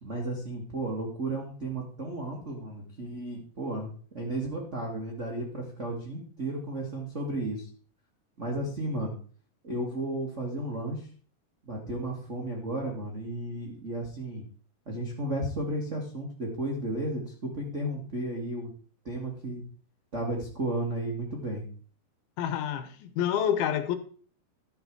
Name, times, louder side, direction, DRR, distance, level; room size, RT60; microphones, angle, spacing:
voice 1, 0.0-3.9 4.1-7.7 8.4-9.2 9.6-11.1 11.6-14.4 14.8-18.7 19.0-19.6 20.1-21.7, right 1 dB, 80° right, 0.6 m, -33 dB
voice 2, 22.4-24.0, left 9 dB, 75° left, 2.6 m, -28 dB
12.5 x 5.8 x 4.6 m
omnidirectional pair, 4.6 m